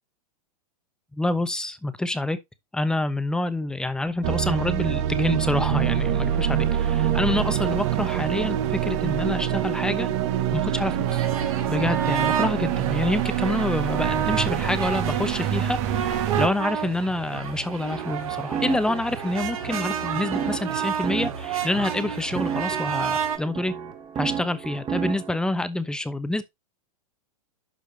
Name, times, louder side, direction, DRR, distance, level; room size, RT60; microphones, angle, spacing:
voice 1, 1.1-2.4 2.7-10.1 10.5-11.2 11.7-23.7 24.2-26.4, left 2 dB, 5° left, 0.9 m, -27 dB
sound 1, 4.2-16.5, right 10 dB, 50° right, 1.3 m, -25 dB
sound 2, 11.1-23.4, right 8 dB, 75° right, 3.3 m, -30 dB
sound 3, 17.7-25.4, right 8 dB, 25° right, 1.8 m, -33 dB
11.5 x 5.1 x 2.8 m
hypercardioid pair, 125°, 18 cm